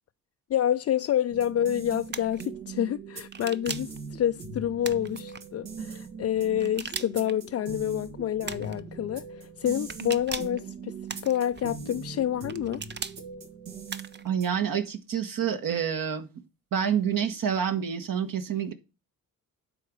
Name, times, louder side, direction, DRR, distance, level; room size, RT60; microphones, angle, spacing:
voice 1, 0.5-12.8, left 10 dB, 40° left, 0.4 m, -28 dB
sound 1, 1.3-14.7, right 4 dB, 75° right, 1.9 m, -41 dB
sound 2, 2.1-2.4 3.3-4.0 4.8-5.4 6.6-7.3 8.4-8.8 9.9-10.6 11.1-11.6 12.5-13.2 13.9-14.3, right 5 dB, 30° right, 0.7 m, -38 dB
voice 2, 14.2-16.3 16.7-18.7, right 8 dB, 60° right, 1.4 m, -28 dB
9.8 x 4.0 x 6.2 m
hypercardioid pair, 45°, 38 cm